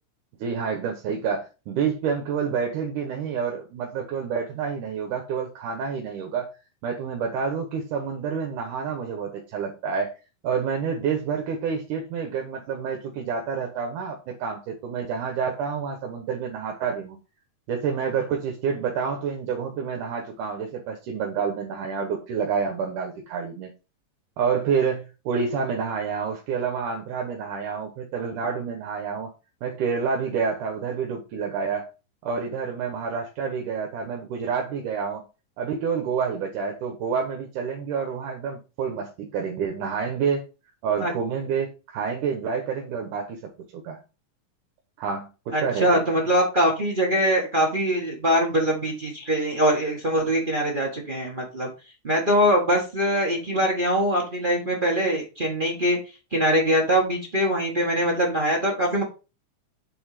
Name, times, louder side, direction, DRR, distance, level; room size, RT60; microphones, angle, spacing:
voice 1, 0.4-6.5 6.8-10.1 10.4-17.2 17.7-23.7 24.4-29.3 29.6-31.9 32.2-35.2 35.6-40.5 40.8-44.0 45.0-46.0, right 6 dB, 80° right, 2 dB, 2.6 m, -28 dB
voice 2, 45.5-51.7 52.0-56.0 56.3-59.0, equal, 40° right, -2 dB, 0.7 m, -23 dB
7.9 x 3.5 x 4.9 m, 0.30 s
omnidirectional pair, 3.6 m